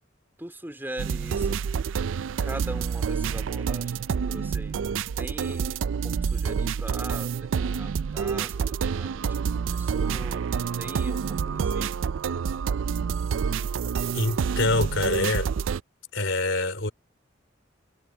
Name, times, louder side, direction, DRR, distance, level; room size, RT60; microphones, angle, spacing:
voice 1, 0.4-1.6 2.4-4.8 5.2-10.5 10.8-11.9, right 1 dB, 10° right, 3.1 m, -41 dB
sound 1, 1.0-15.8, right 6 dB, 80° right, 0.4 m, -28 dB
voice 2, 14.1-15.5 16.1-16.9, left 2 dB, 70° left, 4.7 m, -25 dB
head